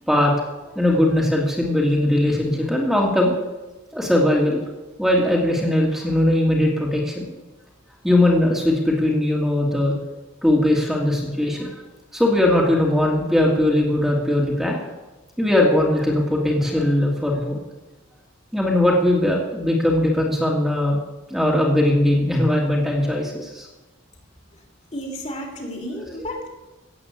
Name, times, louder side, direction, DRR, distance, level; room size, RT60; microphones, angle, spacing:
voice 1, 0.8-3.3 3.9-4.6 5.0-7.2 8.0-9.9 10.4-11.8 12.1-14.8 15.4-17.6 18.5-21.0 21.3-23.7 26.0-26.4, left 1 dB, ahead, -2 dB, 2.3 m, -20 dB
voice 2, 24.9-26.5, equal, 30° left, 1 dB, 3.0 m, -32 dB
16.5 x 8.5 x 8.2 m, 1.1 s
head